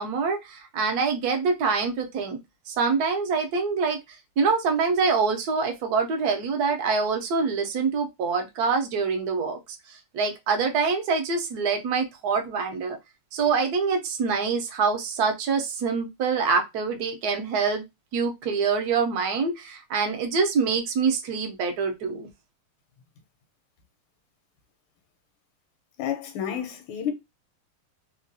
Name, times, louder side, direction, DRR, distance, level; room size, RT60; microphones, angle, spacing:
voice 1, 0.0-2.4 2.7-4.0 4.4-9.6 10.1-13.0 13.3-17.8 18.1-22.3, right 5 dB, 65° right, 1.0 m, -25 dB
voice 2, 26.0-27.1, left 9 dB, 75° left, 1.5 m, -30 dB
3.5 x 2.3 x 2.6 m
omnidirectional pair, 2.3 m